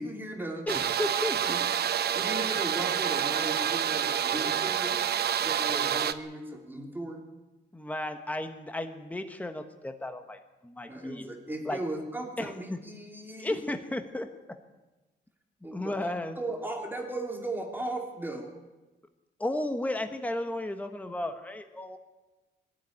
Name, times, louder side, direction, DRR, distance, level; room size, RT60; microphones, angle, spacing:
voice 1, 0.0-0.7 1.4-1.6 2.1-5.0 5.4-7.2 10.9-13.6 15.6-18.5, right 1 dB, 10° right, 2 dB, 2.7 m, -37 dB
voice 2, 0.7-1.4 7.7-11.2 11.6-11.8 12.4-12.8 13.4-14.3 15.7-16.4 19.4-22.0, left 1 dB, 10° left, 7 dB, 1.3 m, -34 dB
sound 1, 0.7-6.1, right 9 dB, 60° right, 0.9 m, -28 dB
22.5 x 12.5 x 9.9 m, 1.1 s
wide cardioid pair, 155°, 18 cm